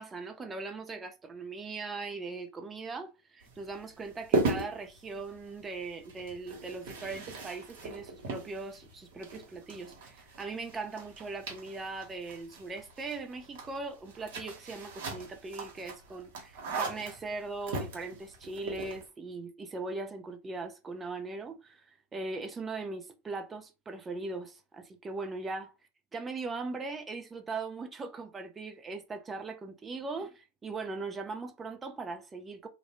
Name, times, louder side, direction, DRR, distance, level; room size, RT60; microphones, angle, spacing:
voice 1, 0.0-25.7 26.1-32.7, right 3 dB, 20° right, 0.5 m, -40 dB
sound 1, 3.4-19.1, right 3 dB, 65° right, 1.0 m, -38 dB
2.5 x 2.0 x 2.9 m
hypercardioid pair, 105°, 0 cm